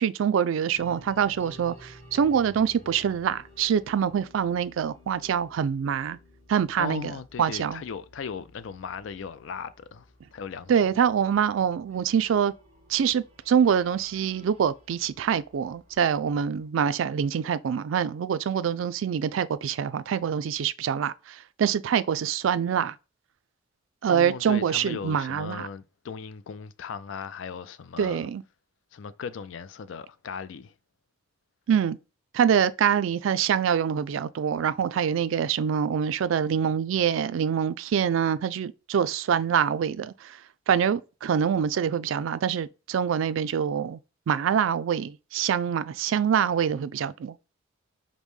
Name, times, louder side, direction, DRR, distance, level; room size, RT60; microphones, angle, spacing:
voice 1, 0.0-6.2 6.5-7.1 7.4-7.8 10.7-12.5 12.9-22.9 24.0-25.7 28.0-28.4 31.7-32.0 32.3-40.4 40.7-44.0 44.3-47.3, right 8 dB, 75° right, 0.3 m, -25 dB
sound 1, 0.7-16.7, left 1 dB, 35° right, 1.5 m, -54 dB
voice 2, 6.8-10.7 24.1-28.3 28.9-30.7, left 6 dB, 70° left, 0.4 m, -37 dB
5.2 x 2.1 x 3.1 m
head